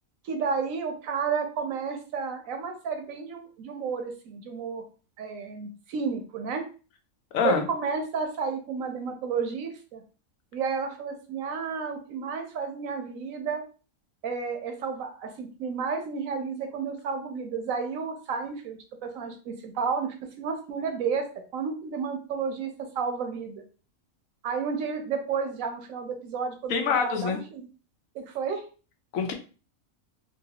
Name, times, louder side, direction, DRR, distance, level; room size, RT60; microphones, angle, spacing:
voice 1, 0.2-4.8 5.2-6.6 7.4-10.0 10.5-13.6 14.2-21.3 21.5-23.6 24.4-27.7 28.1-28.6, right 5 dB, 90° right, 5 dB, 1.1 m, -31 dB
voice 2, 7.3-7.6 26.7-27.4 29.1-29.3, left 7 dB, 85° left, 5 dB, 1.1 m, -25 dB
3.1 x 2.6 x 2.8 m, 0.36 s
omnidirectional pair, 1.4 m